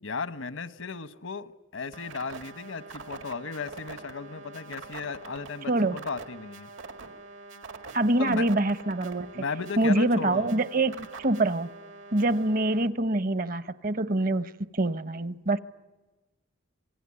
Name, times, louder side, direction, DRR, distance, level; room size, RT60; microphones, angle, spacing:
voice 1, 0.0-6.7 8.2-8.5 9.3-10.5, left 4 dB, 85° left, 13 dB, 1.2 m, -35 dB
sound 1, 1.9-12.9, right 3 dB, 75° right, 2.0 m, -45 dB
voice 2, 5.7-6.0 7.9-9.3 9.8-11.7 12.1-15.6, right 2 dB, 45° right, 14 dB, 0.9 m, -25 dB
27.0 x 19.5 x 9.8 m, 1.2 s
head